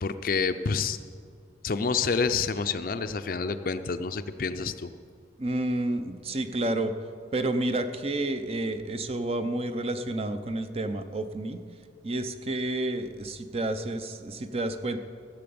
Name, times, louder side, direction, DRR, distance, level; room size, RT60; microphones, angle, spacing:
voice 1, 0.0-1.0 1.6-4.9, left 5 dB, 50° left, 10 dB, 0.5 m, -28 dB
voice 2, 5.4-6.9 7.3-11.6 12.0-15.0, right 1 dB, 35° right, 9 dB, 0.6 m, -30 dB
15.5 x 7.7 x 7.0 m, 2.3 s
head